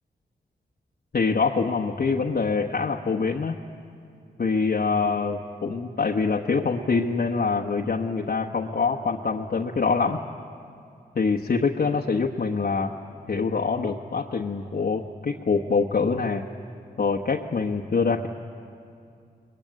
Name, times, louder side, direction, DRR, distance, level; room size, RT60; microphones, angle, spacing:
voice 1, 1.1-3.6 4.4-10.2 11.1-12.9 13.3-16.4 17.0-18.3, left 4 dB, 55° left, -1 dB, 1.2 m, -25 dB
23.0 x 21.0 x 9.3 m, 2.5 s
cardioid pair, 50°, 18 cm